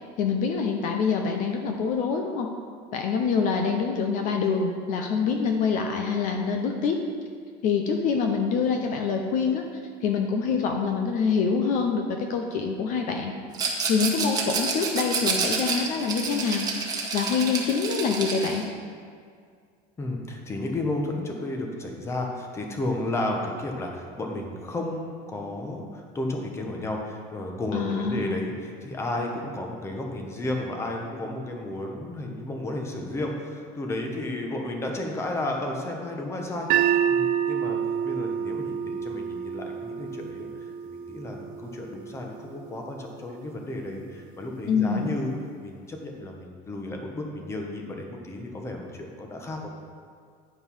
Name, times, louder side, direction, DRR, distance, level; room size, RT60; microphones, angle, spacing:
voice 1, 0.2-2.5 2.9-7.0 7.6-9.6 10.0-13.3 13.9-18.6 27.7-28.4 44.7-45.1, left 5 dB, 50° left, 3 dB, 0.7 m, -25 dB
Rattle, 13.5-18.6, right 4 dB, 20° right, 1.2 m, -29 dB
voice 2, 20.0-40.5 40.8-45.3 45.6-49.7, left 1 dB, 15° left, 1 dB, 1.0 m, -33 dB
sound 1, 36.7-42.9, right 9 dB, 50° right, 0.5 m, -28 dB
10.0 x 5.3 x 5.5 m, 2.1 s
cardioid pair, 165°, 17 cm